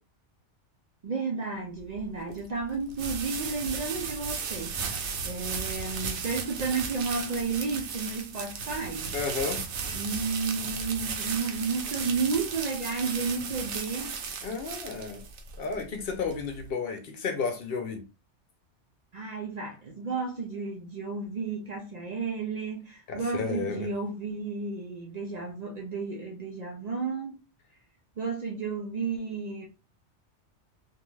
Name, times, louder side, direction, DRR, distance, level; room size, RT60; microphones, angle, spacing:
voice 1, 1.0-9.2 9.9-14.1 19.1-27.4 28.2-29.7, right 4 dB, 60° right, 0.4 m, -32 dB
sound 1, 1.8-16.7, right 5 dB, 75° right, 0.9 m, -35 dB
voice 2, 9.1-9.6 14.4-15.2 15.6-18.0 23.1-23.9, left 5 dB, 60° left, 0.7 m, -32 dB
2.5 x 2.2 x 3.1 m
omnidirectional pair, 1.2 m